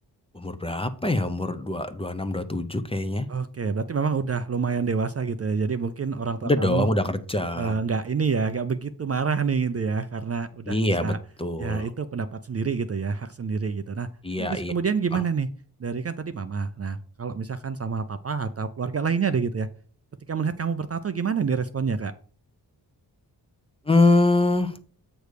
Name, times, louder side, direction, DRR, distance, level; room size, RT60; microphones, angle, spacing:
voice 1, 0.3-3.3 6.4-7.8 10.7-11.1 11.4-11.9 14.2-14.7 15.1-15.2 23.9-24.7, left 2 dB, 15° left, 10 dB, 0.7 m, -24 dB
voice 2, 3.3-6.9 7.5-11.2 11.6-14.1 14.4-15.5 15.8-19.7 20.3-22.1, right 5 dB, 35° right, 10 dB, 0.5 m, -27 dB
7.8 x 3.4 x 6.4 m, 0.42 s
wide cardioid pair, 90°, 42 cm